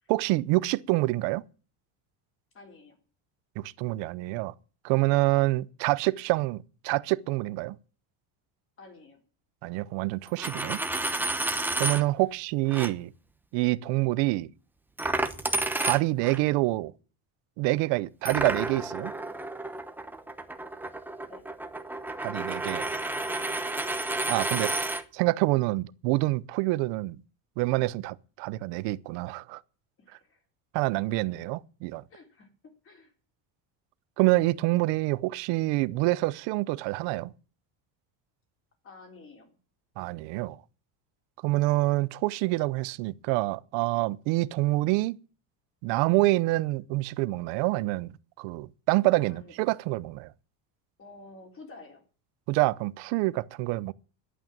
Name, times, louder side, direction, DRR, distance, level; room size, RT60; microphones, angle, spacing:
voice 1, 0.1-1.4 3.6-4.5 4.8-7.8 9.6-10.8 11.8-13.1 13.5-14.5 15.8-16.9 17.6-19.1 22.2-22.9 24.3-24.9 25.1-27.2 27.6-29.6 30.7-32.0 34.2-37.3 40.0-40.6 41.4-45.2 45.8-48.1 48.4-50.3 52.5-53.9, right 20 dB, 70° right, 0.8 m, -26 dB
voice 2, 2.5-3.0 8.8-9.2 13.5-13.6 21.3-21.5 30.0-30.4 32.1-33.1 38.8-39.6 49.2-49.5 51.0-52.0, left 3 dB, 30° left, 4.0 m, -50 dB
Coin (dropping), 10.3-12.0 12.7-12.9 15.0-16.4 18.3-25.0, right 2 dB, 5° right, 0.9 m, -31 dB
11.5 x 8.9 x 9.2 m
cardioid pair, 150°, 44 cm